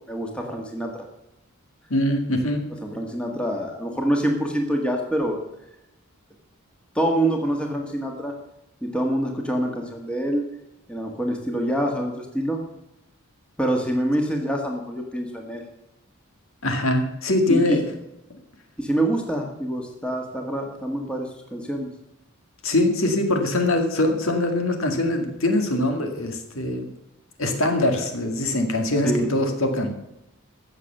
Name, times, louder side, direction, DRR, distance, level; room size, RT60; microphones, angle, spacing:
voice 1, 0.1-1.1 2.8-5.4 6.9-8.3 8.8-10.5 10.9-12.6 13.6-15.6 17.5-17.8 18.8-21.9 29.0-29.3, right 1 dB, 5° left, 1 dB, 1.6 m, -25 dB
voice 2, 1.9-2.6 16.6-17.8 22.6-26.9 27.4-29.9, left 1 dB, 65° left, 5 dB, 2.0 m, -23 dB
15.0 x 7.0 x 6.6 m, 0.88 s
head